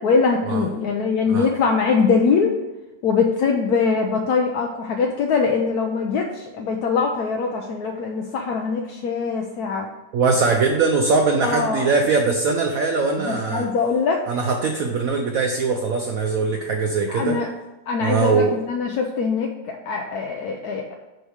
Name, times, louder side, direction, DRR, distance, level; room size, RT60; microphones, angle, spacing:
voice 1, 0.0-2.5 3.0-9.9 11.4-11.9 13.2-14.2 17.1-17.5 17.9-20.9, left 5 dB, 65° left, 1 dB, 1.1 m, -22 dB
voice 2, 10.1-13.7 14.3-17.4 18.0-18.6, right 4 dB, 65° right, 3 dB, 0.9 m, -21 dB
6.3 x 4.9 x 6.3 m, 1.1 s
omnidirectional pair, 2.0 m